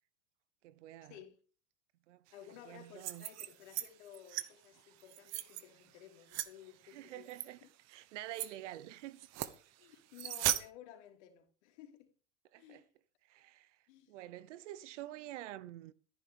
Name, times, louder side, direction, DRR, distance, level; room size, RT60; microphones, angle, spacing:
voice 1, 0.6-1.2 2.1-2.3 2.7-3.3 6.8-7.6 7.9-9.3 12.5-12.8 13.3-13.8 14.1-15.9, right 14 dB, 80° right, 1.0 m, -47 dB
voice 2, 2.3-7.7 9.8-12.1 12.6-12.9 13.9-14.2, left 10 dB, 70° left, 3.1 m, -55 dB
sound 1, 2.9-3.9 4.1-4.5 5.0-5.6 6.3-6.5 7.3-7.5 7.9-8.0 8.3-8.5 9.2-9.6 10.1-10.6, right 14 dB, 45° right, 1.1 m, -37 dB
14.0 x 10.0 x 3.5 m
supercardioid pair, 120°, 36 cm